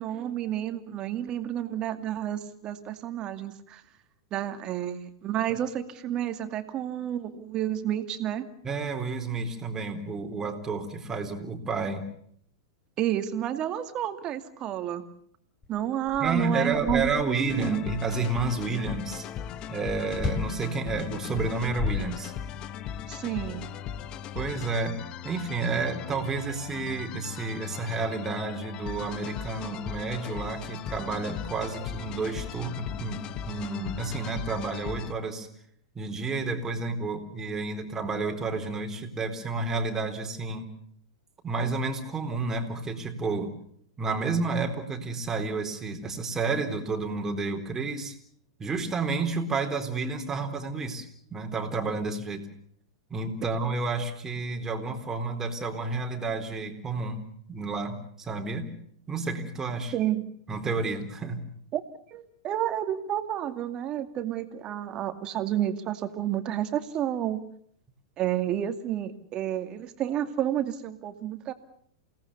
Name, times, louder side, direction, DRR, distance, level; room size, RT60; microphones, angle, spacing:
voice 1, 0.0-3.8 4.3-8.5 13.0-15.0 15.7-17.9 23.1-23.7 59.9-60.3 61.7-61.8 62.1-67.4 68.2-71.5, right 11 dB, 35° right, 8 dB, 2.4 m, -30 dB
voice 2, 8.6-12.1 16.2-19.3 19.7-22.3 24.3-35.5 35.9-40.7 41.4-43.5 44.0-48.1 48.6-52.5 53.1-58.7 59.1-59.9 60.5-61.5, right 3 dB, 20° right, 4 dB, 4.0 m, -30 dB
sound 1, 15.6-15.7 16.1-17.6 20.1-20.6 21.4-22.6, left 4 dB, 20° left, 5.6 m, -33 dB
sound 2, 17.5-35.1, left 9 dB, 35° left, 1.3 m, -38 dB
29.0 x 18.5 x 7.0 m, 0.66 s
hypercardioid pair, 100°, 2 cm